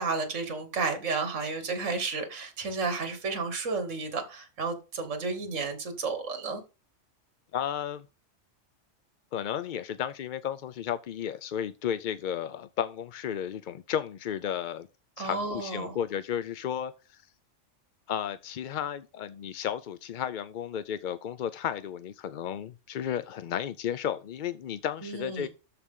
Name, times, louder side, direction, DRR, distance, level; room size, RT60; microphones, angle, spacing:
voice 1, 0.0-6.6 15.2-16.0 25.0-25.5, right 4 dB, 70° right, 1.8 m, -32 dB
voice 2, 7.5-8.1 9.3-14.9 15.2-17.2 18.1-25.5, left 9 dB, 60° left, 0.5 m, -33 dB
12.5 x 4.3 x 3.7 m
omnidirectional pair, 1.3 m